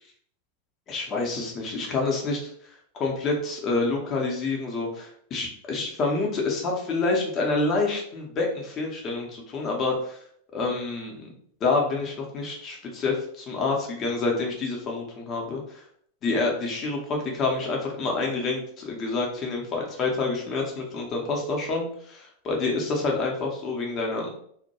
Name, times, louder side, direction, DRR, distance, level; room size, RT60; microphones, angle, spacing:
voice 1, 0.9-2.4 2.9-10.2 10.5-11.3 11.6-15.6 16.2-24.4, left 3 dB, 30° left, 0 dB, 0.6 m, -27 dB
2.1 x 2.1 x 2.8 m, 0.65 s
figure-of-eight pair, 90°, 0 cm